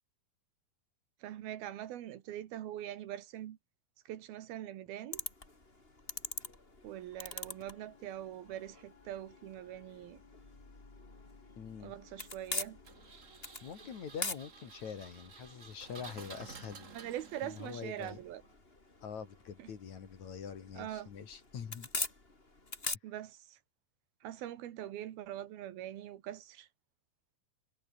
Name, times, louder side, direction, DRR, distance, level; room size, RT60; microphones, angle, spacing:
voice 1, 1.2-3.6 4.1-5.2 6.8-10.2 11.8-12.8 16.9-18.4 19.6-19.7 20.8-21.1 23.0-23.6 24.2-26.7, right 12 dB, 80° right, 3.4 m, -43 dB
sound 1, 5.1-23.0, left 2 dB, 15° left, 3.3 m, -45 dB
Wind instrument woodwind instrument, 7.0-13.1, left 7 dB, 85° left, 5.9 m, -64 dB
voice 2, 11.6-11.9 13.6-16.9 17.4-18.2 19.0-21.9, left 7 dB, 50° left, 3.6 m, -45 dB
Engine, 12.8-18.5, right 5 dB, 40° right, 1.2 m, -53 dB
omnidirectional pair, 4.3 m